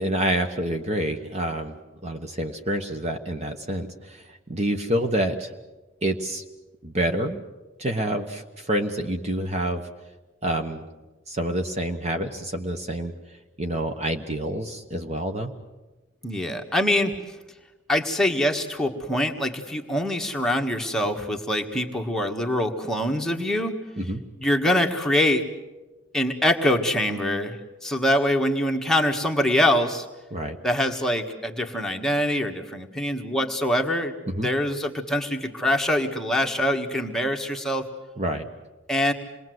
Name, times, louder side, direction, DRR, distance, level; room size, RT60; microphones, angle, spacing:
voice 1, 0.0-1.8 2.0-5.5 6.0-6.4 6.8-7.4 7.8-9.8 10.4-10.8 11.3-13.1 13.6-15.5 24.0-24.2 30.3-30.6 34.3-34.5 38.2-38.5, right 1 dB, 35° right, 5 dB, 1.2 m, -27 dB
voice 2, 16.2-17.1 17.9-23.8 24.4-25.4 26.1-30.0 30.6-34.1 34.4-37.8 38.9-39.1, left 1 dB, ahead, 1 dB, 1.6 m, -24 dB
27.5 x 21.0 x 7.9 m, 1.2 s
head